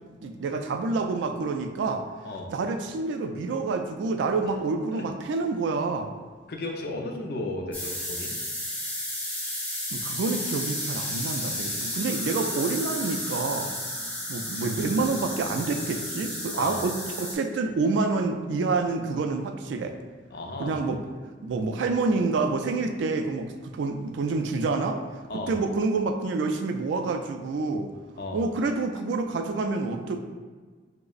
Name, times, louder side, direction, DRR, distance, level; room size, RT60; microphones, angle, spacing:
voice 1, 0.2-2.0 2.5-6.1 9.9-13.7 14.3-19.9 20.6-21.0 21.4-25.0 25.3-27.9 28.3-30.2, right 3 dB, 85° right, 5 dB, 0.3 m, -28 dB
voice 2, 6.5-8.3 16.5-16.8 20.3-20.8 25.3-25.5 28.2-28.4, left 2 dB, 55° left, 2 dB, 0.4 m, -34 dB
sound 1, 7.7-17.3, left 1 dB, 10° left, 0.5 m, -32 dB
4.9 x 2.0 x 2.4 m, 1.5 s
head